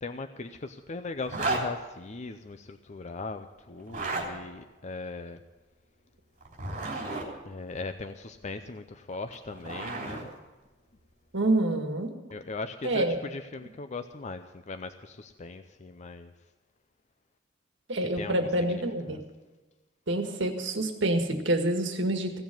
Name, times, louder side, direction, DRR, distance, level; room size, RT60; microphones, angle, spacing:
voice 1, 0.0-5.4 7.5-10.3 12.3-16.3 18.2-18.8 19.1-19.2, left 3 dB, 35° left, 8 dB, 0.6 m, -39 dB
Zipper (clothing), 1.2-1.7 3.8-4.3 6.4-7.3 9.1-10.2, right 2 dB, 40° right, 3.5 m, -32 dB
voice 2, 11.3-12.1 12.8-13.2 17.9-19.2 20.1-22.4, right 1 dB, 70° right, 5 dB, 1.7 m, -27 dB
16.0 x 7.2 x 9.2 m, 1.2 s
head